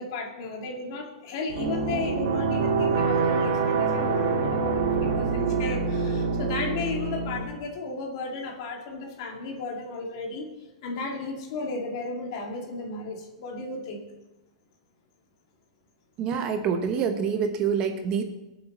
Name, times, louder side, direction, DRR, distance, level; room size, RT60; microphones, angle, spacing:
voice 1, 0.0-10.5 10.8-14.0, left 3 dB, 45° left, 1 dB, 2.5 m, -34 dB
sound 1, 1.5-7.4, right 5 dB, 60° right, 2.6 m, -25 dB
voice 2, 16.2-18.2, right 6 dB, 25° right, 7 dB, 0.8 m, -26 dB
22.0 x 7.4 x 4.1 m, 1.0 s
supercardioid pair, 170°, 3 cm